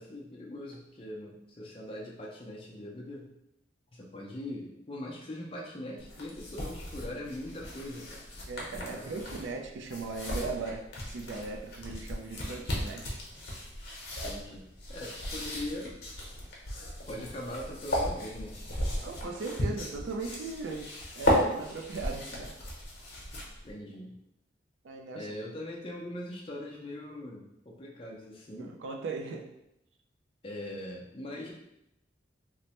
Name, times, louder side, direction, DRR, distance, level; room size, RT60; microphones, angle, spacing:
voice 1, 0.0-3.3 3.9-8.2 8.7-9.1 14.2-16.0 17.1-18.5 23.6-24.2 25.1-28.7 30.4-31.5, left 1 dB, 30° left, -2 dB, 0.5 m, -41 dB
sound 1, 6.0-23.7, equal, 60° left, 0.8 m, -35 dB
voice 2, 8.5-13.2 19.0-20.9 21.1-22.5 23.9-24.0 24.8-25.3 28.6-29.5, right 3 dB, 85° right, 2 dB, 0.4 m, -38 dB
3.1 x 2.1 x 2.9 m, 0.84 s
head